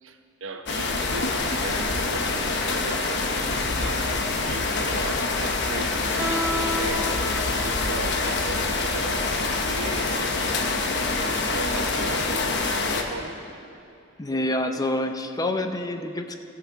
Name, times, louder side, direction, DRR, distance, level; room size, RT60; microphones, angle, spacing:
voice 1, 0.0-6.0 6.5-7.2 7.5-10.5 11.0-13.4, right 3 dB, 90° right, 5 dB, 0.9 m, -37 dB
sound 1, 0.7-13.0, left 3 dB, 60° left, 1.0 m, -26 dB
Guitar, 6.2-11.9, equal, 10° right, 1.1 m, -34 dB
voice 2, 14.2-16.4, left 1 dB, 20° left, 6 dB, 0.5 m, -27 dB
18.0 x 6.6 x 4.6 m, 2.6 s
head